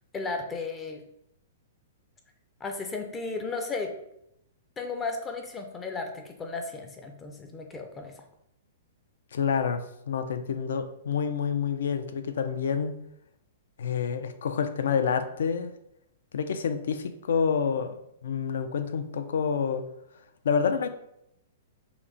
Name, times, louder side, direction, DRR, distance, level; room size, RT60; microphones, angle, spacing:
voice 1, 0.1-1.0 2.6-3.9 4.8-8.2, left 3 dB, 15° left, 4 dB, 0.4 m, -34 dB
voice 2, 9.3-12.9 13.8-15.7 16.3-19.8 20.4-20.9, left 6 dB, 75° left, 9 dB, 0.5 m, -28 dB
5.7 x 2.1 x 3.9 m, 0.78 s
hypercardioid pair, 165°, 0 cm